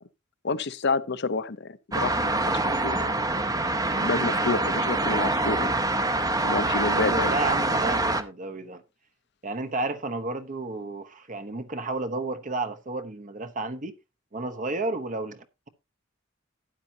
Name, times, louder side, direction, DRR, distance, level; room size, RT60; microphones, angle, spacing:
voice 1, 0.4-3.1 3.9-5.7 6.4-7.3, left 4 dB, 55° left, 0.7 m, -29 dB
sound 1, 1.9-8.2, right 2 dB, 20° right, 0.8 m, -25 dB
voice 2, 6.9-8.8 9.4-13.9 14.3-15.7, right 2 dB, 40° right, 1.0 m, -32 dB
12.5 x 9.9 x 2.8 m
head